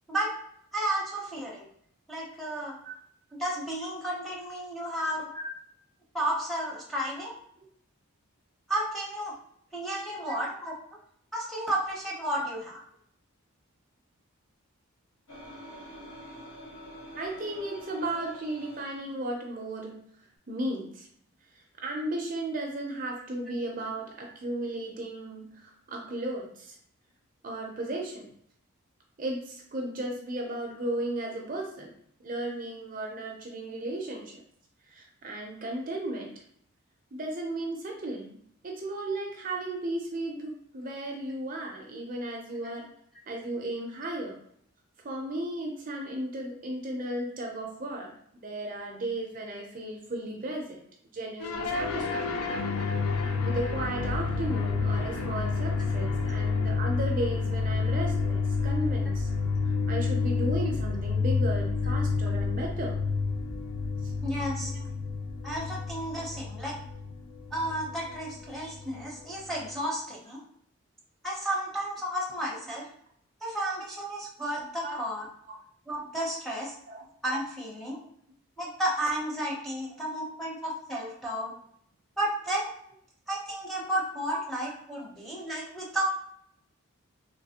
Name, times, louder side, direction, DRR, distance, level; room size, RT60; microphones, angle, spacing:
voice 1, 0.7-1.7 2.1-2.8 3.3-5.3 6.1-7.3 8.7-9.3 9.7-10.7 11.3-12.8 42.6-42.7 56.3-56.4 64.2-64.7 65.4-66.8 67.5-70.4 71.2-72.9 73.4-75.3 75.9-76.8 77.2-78.0 78.6-81.5 82.2-82.7 83.3-86.0, right 1 dB, ahead, -5 dB, 0.6 m, -32 dB
sound 1, 15.3-19.0, equal, 60° left, 1.2 m, -46 dB
voice 2, 17.1-20.0 20.5-21.1 21.8-26.7 27.4-28.3 29.2-31.9 32.2-34.4 34.9-36.3 37.1-42.9 43.3-44.4 45.0-48.1 48.4-50.8 51.1-52.3 53.4-59.3 59.9-62.9 64.7-64.9 74.8-75.0 75.5-75.6 76.9-77.1 84.3-84.4 84.7-84.8, right 1 dB, 40° right, 0 dB, 0.5 m, -35 dB
sound 2, 51.4-69.7, left 4 dB, 85° left, 0.4 m, -29 dB
3.2 x 2.9 x 2.8 m, 0.66 s
head